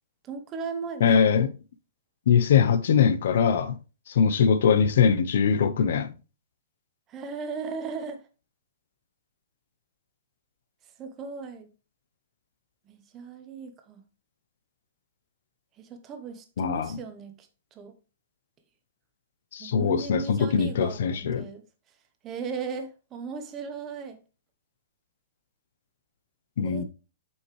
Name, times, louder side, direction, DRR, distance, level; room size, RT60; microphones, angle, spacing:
voice 1, 0.2-1.1 7.1-8.2 11.0-11.7 12.9-14.0 15.8-17.5 17.7-17.9 19.6-21.6 22.2-24.2 26.6-26.8, right 5 dB, 20° right, 1.0 m, -37 dB
voice 2, 1.0-1.5 2.3-3.8 4.1-6.1 16.6-17.0 19.5-21.5 26.6-26.8, left 7 dB, 60° left, 0.9 m, -22 dB
8.0 x 5.5 x 3.3 m
hypercardioid pair, 165°, 0 cm